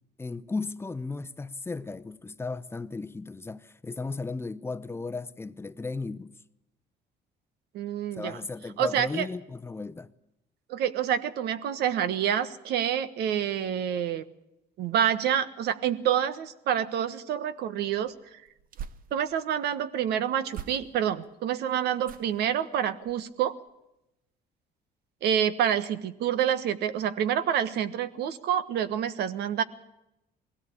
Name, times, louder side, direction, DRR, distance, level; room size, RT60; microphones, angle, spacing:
voice 1, 0.2-6.3 8.2-10.1, left 3 dB, 15° left, 0.8 m, -35 dB
voice 2, 7.7-8.4 8.8-9.3 10.7-14.2 14.8-18.1 19.1-23.6 25.2-29.6, right 9 dB, 75° right, 1.3 m, -27 dB
sound 1, 17.9-19.6 20.5-21.2 22.0-22.5 23.0-23.3 23.7-23.8, right 9 dB, 55° right, 1.0 m, -44 dB
21.0 x 17.0 x 8.5 m
cardioid pair, 110°, 17 cm